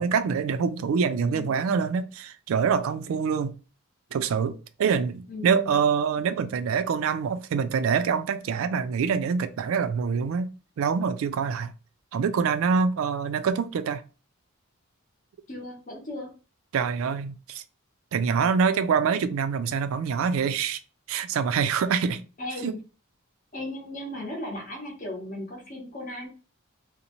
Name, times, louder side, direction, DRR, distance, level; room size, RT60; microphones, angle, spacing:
voice 1, 0.0-3.5 4.1-10.5 10.8-11.7 12.1-14.0 16.7-17.6 18.1-20.8 21.1-22.2 22.6-22.8, right 6 dB, 70° right, 0.3 m, -25 dB
voice 2, 1.2-1.7 5.3-5.8 15.5-16.3 22.4-22.8 23.5-26.3, left 1 dB, 40° left, 0.6 m, -37 dB
2.6 x 2.0 x 2.8 m
head